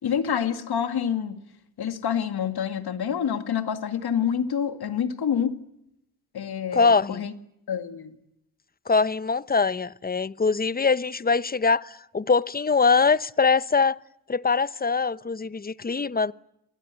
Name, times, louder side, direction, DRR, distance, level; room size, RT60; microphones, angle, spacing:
voice 1, 0.0-1.4 1.8-5.6 6.3-7.3 7.7-8.2, left 8 dB, 75° left, 2.2 m, -27 dB
voice 2, 6.7-7.2 8.9-14.0 14.3-16.3, left 4 dB, 25° left, 0.9 m, -23 dB
28.5 x 21.0 x 8.4 m
supercardioid pair, 45°, 39 cm